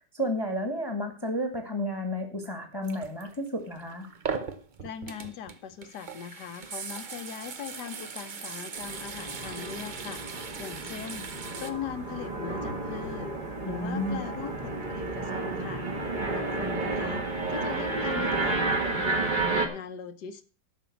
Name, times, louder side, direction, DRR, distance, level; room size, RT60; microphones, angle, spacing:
voice 1, 0.0-4.1 13.6-14.2, equal, 15° left, 4 dB, 1.5 m, -32 dB
sound 1, 2.8-11.7, right 5 dB, 60° right, 0.5 m, -39 dB
voice 2, 4.8-11.3 11.6-13.3 13.7-15.9 16.3-17.2 17.5-19.2 19.7-20.4, left 8 dB, 65° left, 11 dB, 1.4 m, -40 dB
sound 2, 8.8-19.7, right 3 dB, 25° right, 1.5 m, -31 dB
12.0 x 5.5 x 7.0 m, 0.38 s
omnidirectional pair, 2.1 m